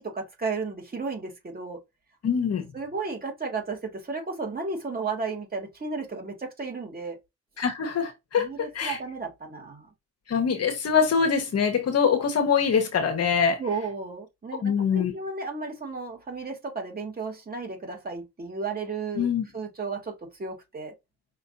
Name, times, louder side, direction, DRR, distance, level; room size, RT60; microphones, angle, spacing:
voice 1, 0.0-1.8 2.7-7.2 8.3-9.9 13.6-19.3 19.5-20.9, right 4 dB, 30° right, 2.7 m, -33 dB
voice 2, 2.2-2.6 7.6-9.0 10.3-13.6 14.6-15.1 19.2-19.4, left 6 dB, 55° left, 1.5 m, -24 dB
5.6 x 3.3 x 2.8 m
cardioid pair, 90°, 30 cm